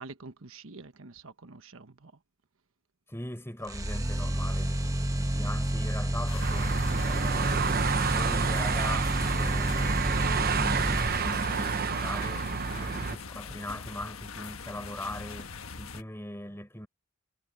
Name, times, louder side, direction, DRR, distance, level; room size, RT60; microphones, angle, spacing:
voice 1, 0.0-2.1, right 3 dB, 75° right, 1.2 m, -46 dB
voice 2, 3.1-15.5 15.8-16.9, left 1 dB, 10° left, 5.0 m, -41 dB
sound 1, 3.7-11.7, right 1 dB, 15° right, 1.2 m, -30 dB
sound 2, 6.3-16.0, left 5 dB, 90° left, 1.3 m, -42 dB
sound 3, 6.4-13.2, right 5 dB, 45° right, 0.8 m, -29 dB
head